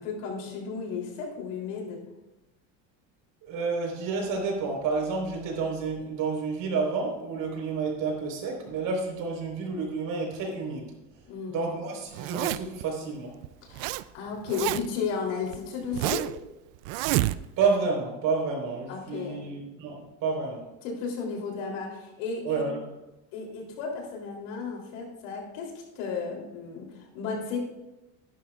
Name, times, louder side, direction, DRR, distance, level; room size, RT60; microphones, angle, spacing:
voice 1, 0.0-2.0 11.3-11.6 13.6-16.3 18.9-19.4 20.8-22.6 23.3-27.6, left 5 dB, 85° left, 0 dB, 3.3 m, -34 dB
voice 2, 3.4-10.9 11.5-13.3 17.6-20.6 22.4-22.8, right 4 dB, 55° right, 0 dB, 4.2 m, -30 dB
Zipper (clothing), 12.1-12.8 13.4-14.0 14.3-15.0 15.5-16.4 16.9-17.7, right 17 dB, 70° right, 0.5 m, -29 dB
15.0 x 11.0 x 2.4 m, 0.99 s
cardioid pair, 135°, 38 cm